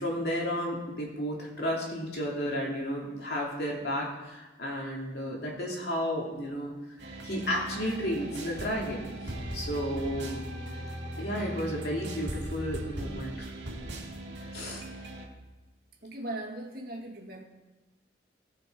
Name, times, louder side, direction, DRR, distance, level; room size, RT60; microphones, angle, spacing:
voice 1, 0.0-7.0 7.2-9.0 9.5-10.4 11.2-13.5 14.5-14.8, equal, 65° left, -2 dB, 2.8 m, -32 dB
sound 1, 7.0-15.3, right 1 dB, 80° right, 2.2 m, -39 dB
voice 2, 16.0-17.4, right 1 dB, 55° right, -1 dB, 2.0 m, -38 dB
18.0 x 6.0 x 4.6 m, 1.1 s
head